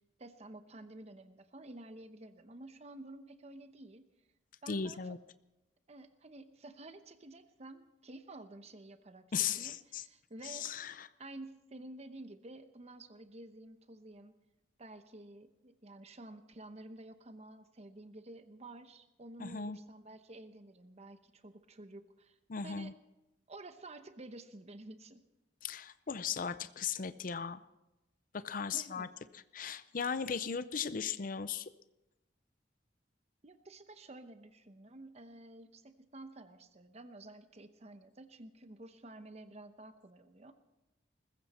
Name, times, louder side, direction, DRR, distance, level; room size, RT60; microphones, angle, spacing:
voice 1, 0.2-4.1 4.6-5.1 5.9-9.2 9.6-10.7 11.2-14.3 14.8-22.4 22.6-22.9 23.5-25.2 28.7-29.1 33.4-40.5, right 2 dB, 40° right, 9 dB, 0.9 m, -51 dB
voice 2, 4.7-5.2 9.3-10.0 10.4-11.1 19.4-19.8 22.5-22.9 25.6-27.6 28.3-29.1 29.3-31.7, left 6 dB, 50° left, 13 dB, 0.5 m, -37 dB
20.5 x 15.0 x 4.3 m, 0.95 s
head